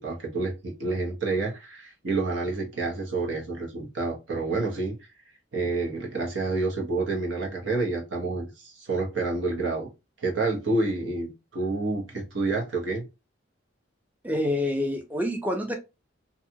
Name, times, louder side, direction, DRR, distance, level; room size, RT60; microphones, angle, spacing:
voice 1, 0.0-5.0 5.5-9.9 10.2-13.1, right 3 dB, 75° right, 1.0 m, -28 dB
voice 2, 14.2-15.7, left 1 dB, 10° right, 0.4 m, -27 dB
2.7 x 2.3 x 2.7 m
head